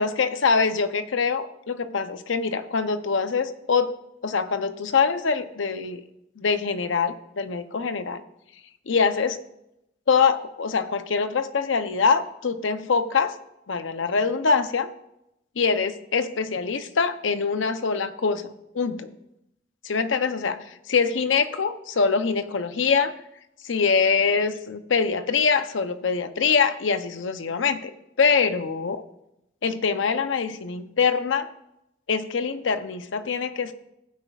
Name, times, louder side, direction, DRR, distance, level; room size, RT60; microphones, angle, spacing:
voice 1, 0.0-3.9 4.2-6.0 6.4-8.2 8.9-9.4 10.1-13.3 13.7-14.9 15.6-18.4 18.7-19.1 19.8-23.1 23.6-27.9 28.2-29.0 29.6-31.5 32.1-33.7, left 5 dB, 80° left, 10 dB, 0.7 m, -24 dB
15.5 x 9.1 x 2.4 m, 0.84 s
head